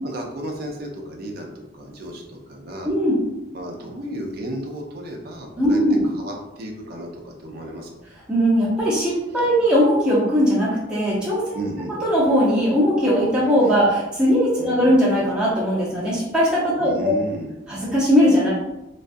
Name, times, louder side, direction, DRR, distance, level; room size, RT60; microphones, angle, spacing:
voice 1, 0.0-2.9 3.5-7.9 9.4-9.5 11.5-11.9 13.7-13.8 14.6-14.8 16.8-17.6, right 1 dB, 50° right, 0 dB, 0.4 m, -33 dB
voice 2, 2.8-3.2 5.6-6.0 8.3-11.6 12.0-17.1 17.7-18.5, equal, 5° right, -9 dB, 0.7 m, -19 dB
2.3 x 2.3 x 2.5 m, 0.96 s
head